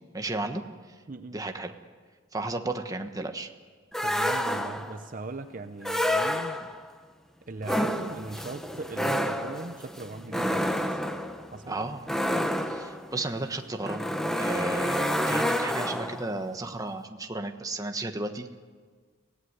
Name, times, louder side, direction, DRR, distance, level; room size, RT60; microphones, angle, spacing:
voice 1, 0.1-0.6 1.3-1.7 2.3-3.5 11.7-12.0 12.7-14.0 14.3-18.5, right 2 dB, 20° right, 6 dB, 1.2 m, -33 dB
sound 1, 3.9-5.0 5.8-6.9 7.6-16.3, equal, ahead, 1.0 m, -29 dB
voice 2, 4.0-6.6 7.5-11.0 11.5-11.9, right 3 dB, 40° right, 8 dB, 0.8 m, -39 dB
24.0 x 18.0 x 9.6 m, 1.5 s
head